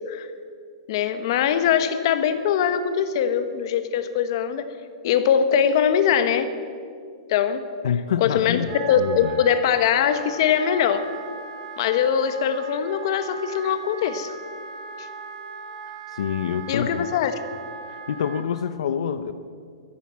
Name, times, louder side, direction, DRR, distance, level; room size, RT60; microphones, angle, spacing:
voice 1, 0.9-4.6 5.0-6.5 7.3-7.7 8.2-8.6 8.9-11.1 11.8-14.3 16.7-17.3, left 8 dB, 50° left, 10 dB, 1.1 m, -22 dB
voice 2, 7.8-9.4 16.1-17.1 17.9-19.3, left 8 dB, 80° left, 11 dB, 0.7 m, -27 dB
Wind instrument woodwind instrument, 8.6-18.5, right 4 dB, 75° right, 2.8 m, -38 dB
14.5 x 11.5 x 7.6 m, 2.2 s
supercardioid pair, 165°, 3 cm